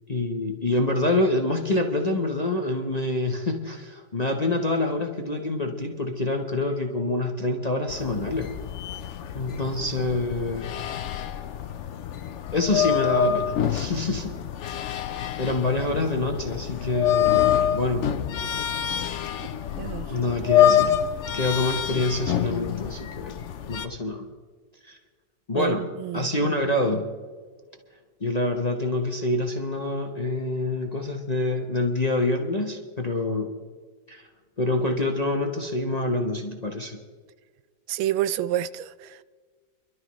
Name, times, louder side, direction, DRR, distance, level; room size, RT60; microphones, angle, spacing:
voice 1, 0.1-8.5 9.3-10.7 12.5-14.4 15.4-18.1 20.1-20.9 21.3-23.4 23.7-24.3 24.9-25.0 25.5-25.9 26.1-27.1 28.2-33.5 34.1-34.3 34.6-37.0, left 2 dB, 30° left, 0.7 m, -26 dB
sound 1, 7.9-23.9, left 10 dB, 75° left, 0.6 m, -26 dB
voice 2, 25.6-26.3 37.9-39.2, right 12 dB, 85° right, 1.3 m, -28 dB
25.5 x 12.5 x 3.1 m
omnidirectional pair, 2.1 m